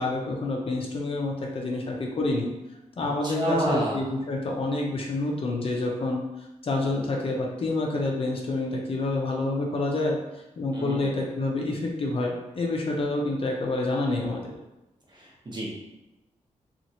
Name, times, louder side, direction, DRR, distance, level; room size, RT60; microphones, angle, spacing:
voice 1, 0.0-2.5 3.0-6.2 6.6-10.2 10.6-14.5, left 2 dB, 45° left, -1 dB, 0.5 m, -28 dB
voice 2, 3.2-4.0 10.7-11.1 15.1-15.8, right 1 dB, 35° right, -4 dB, 0.9 m, -29 dB
2.9 x 2.4 x 2.7 m, 0.98 s
wide cardioid pair, 110°, 13 cm